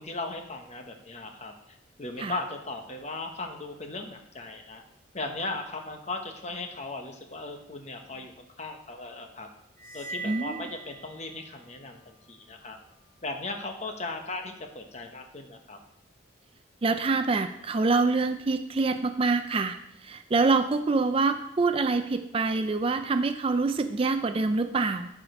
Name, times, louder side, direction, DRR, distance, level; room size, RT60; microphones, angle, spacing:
voice 1, 0.0-4.8 5.1-9.5 9.9-12.8 13.2-15.8, left 2 dB, 35° left, 4 dB, 1.1 m, -37 dB
sound 1, 9.8-11.6, right 4 dB, 90° left, 1.8 m, -41 dB
voice 2, 10.2-10.7 16.8-19.8 20.0-25.1, right 3 dB, 30° right, 9 dB, 0.4 m, -26 dB
12.0 x 5.0 x 5.0 m, 0.82 s
head